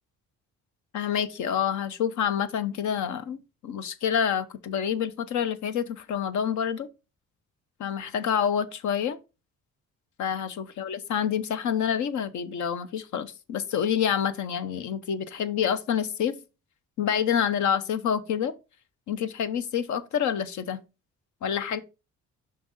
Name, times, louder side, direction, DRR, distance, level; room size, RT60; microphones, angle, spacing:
voice 1, 0.9-6.9 7.8-9.2 10.2-16.3 17.0-18.5 19.1-20.8 21.4-21.8, left 8 dB, 70° left, 0.8 m, -27 dB
5.9 x 5.4 x 3.9 m
cardioid pair, 90°, 30 cm